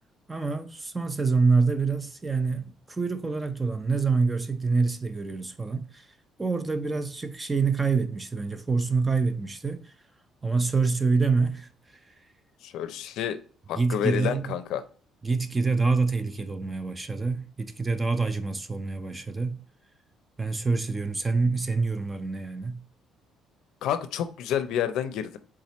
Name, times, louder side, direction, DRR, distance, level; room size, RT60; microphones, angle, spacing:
voice 1, 0.3-6.1 6.4-9.8 10.4-11.7 13.8-14.5 15.2-19.6 20.4-22.8, right 4 dB, 15° right, 0.4 m, -26 dB
voice 2, 12.6-13.4 13.7-14.8 23.8-25.4, left 10 dB, 70° left, 0.5 m, -29 dB
3.6 x 3.0 x 4.2 m
cardioid pair, 165°, 0 cm